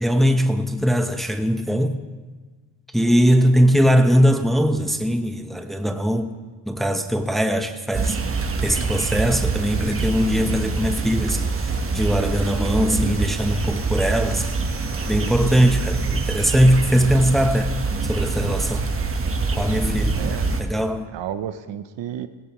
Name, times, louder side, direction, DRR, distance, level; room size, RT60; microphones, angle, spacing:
voice 1, 0.0-2.0 2.9-6.3 6.7-8.2 8.6-11.5 11.9-14.5 15.1-17.7 18.0-18.9 19.5-20.2 20.6-21.1, equal, ahead, 0.9 m, -20 dB
sound 1, 7.9-20.6, right 3 dB, 30° right, 1.3 m, -25 dB
voice 2, 20.2-20.6 21.1-22.3, right 10 dB, 65° right, 0.9 m, -32 dB
17.0 x 17.0 x 3.1 m
cardioid pair, 95°, 47 cm